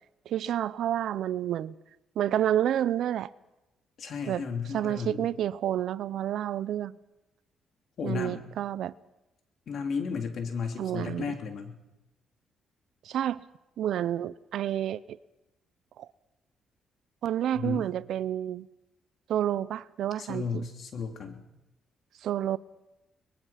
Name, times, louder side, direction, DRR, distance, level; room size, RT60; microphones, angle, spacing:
voice 1, 0.3-1.8 2.2-3.3 4.3-4.5 4.7-6.9 8.0-8.9 10.8-11.3 13.0-13.4 13.8-15.2 16.0-16.1 17.2-18.7 19.3-20.6 22.2-22.6, right 11 dB, 75° right, 0.7 m, -29 dB
voice 2, 4.0-5.3 8.0-8.4 9.7-11.8 17.5-17.9 20.2-21.4, left 5 dB, 60° left, 3.3 m, -34 dB
22.5 x 21.0 x 5.9 m
cardioid pair, 90°, 0 cm